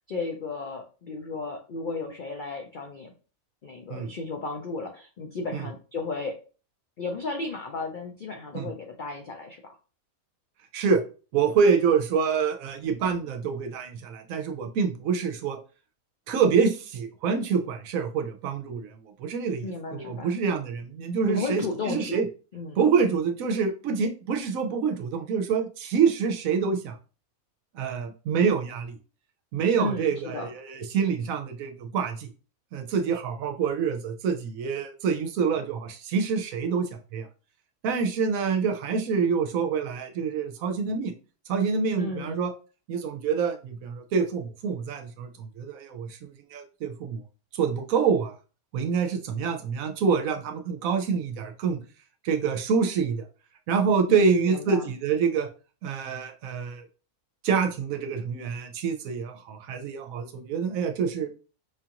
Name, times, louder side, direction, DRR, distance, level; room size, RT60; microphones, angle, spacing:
voice 1, 0.1-3.1 3.6-6.4 7.0-9.8 19.6-20.3 21.2-22.2 22.5-22.8 29.8-30.5 41.9-42.4 54.1-54.9, left 3 dB, 75° left, 2 dB, 0.4 m, -34 dB
voice 2, 11.3-15.6 16.3-18.9 19.2-22.3 22.8-27.0 27.7-29.0 29.5-32.3 32.7-37.3 37.8-41.1 41.5-42.5 42.9-46.2 46.5-47.2 47.5-48.4 48.7-51.8 52.2-53.2 53.7-55.5 55.8-56.8 57.4-61.3, right 6 dB, 70° right, 6 dB, 1.0 m, -26 dB
4.9 x 2.5 x 2.8 m, 0.36 s
omnidirectional pair, 1.5 m